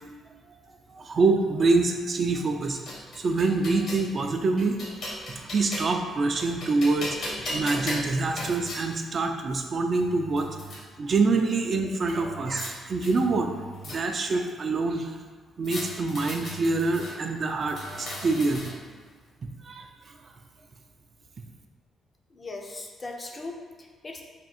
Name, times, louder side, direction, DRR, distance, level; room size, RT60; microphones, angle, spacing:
voice 1, 0.9-2.8 3.2-4.8 5.4-10.5 11.0-13.5 13.8-15.1 15.6-18.6 19.6-19.9, right 3 dB, 45° right, 4 dB, 0.4 m, -25 dB
sound 1, 2.4-4.1 4.6-6.0 6.4-8.8 9.6-9.7 10.0-10.8 12.1-12.7 13.0-14.3 15.6-17.1 17.6-18.9, left 1 dB, 60° left, 1.1 m, -37 dB
voice 2, 22.3-24.2, left 2 dB, 30° left, 2 dB, 0.5 m, -39 dB
3.5 x 2.3 x 4.2 m, 1.5 s
cardioid pair, 90°, 0 cm